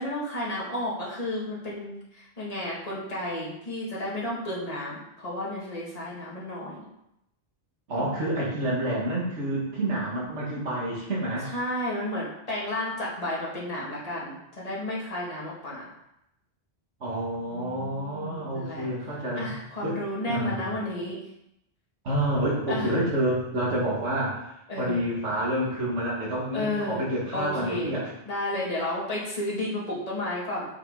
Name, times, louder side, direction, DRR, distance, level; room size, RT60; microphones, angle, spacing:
voice 1, 0.0-6.8 8.0-8.3 11.4-15.9 17.5-18.9 19.4-21.2 22.7-22.9 24.7-25.0 26.5-27.0 27.3-27.9 28.3-30.7, left 1 dB, 35° left, -6 dB, 2.2 m, -32 dB
voice 2, 7.9-11.5 17.0-19.5 19.8-20.0 20.3-20.8 22.0-24.5 24.8-28.1, right 1 dB, 90° right, -5 dB, 2.1 m, -28 dB
6.9 x 6.8 x 3.8 m, 0.82 s
omnidirectional pair, 1.2 m